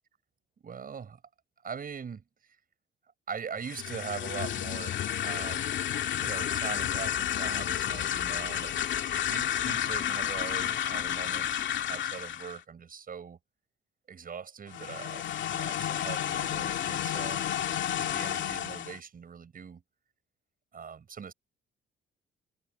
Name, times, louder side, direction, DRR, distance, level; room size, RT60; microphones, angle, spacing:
voice 1, 0.6-1.2 1.6-2.6 3.3-5.7 6.2-8.8 9.3-11.5 11.9-13.4 14.1-17.5 18.0-19.8 20.7-21.3, right 6 dB, 45° right, 7.1 m, -41 dB
sound 1, 3.6-12.6 14.7-19.0, left 10 dB, 70° left, 2.3 m, -31 dB
cardioid pair, 90°, 20 cm